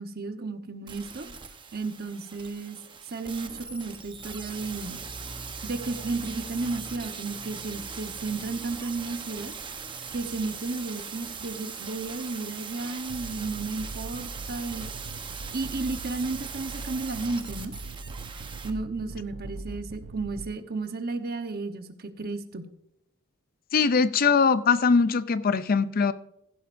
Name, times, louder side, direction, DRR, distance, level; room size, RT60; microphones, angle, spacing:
voice 1, 0.0-1.4 1.7-2.8 3.1-5.0 5.6-9.5 10.1-14.9 15.5-17.7 18.6-22.7, right 3 dB, 45° right, 1.0 m, -33 dB
sound 1, 0.9-18.7 19.0-19.1, right 6 dB, 25° right, 0.9 m, -40 dB
sound 2, 3.9-11.6, equal, 10° left, 2.0 m, -47 dB
sound 3, 13.1-20.5, right 3 dB, 85° right, 0.6 m, -41 dB
voice 2, 23.7-26.1, left 5 dB, 45° left, 0.5 m, -21 dB
15.0 x 11.5 x 2.6 m
head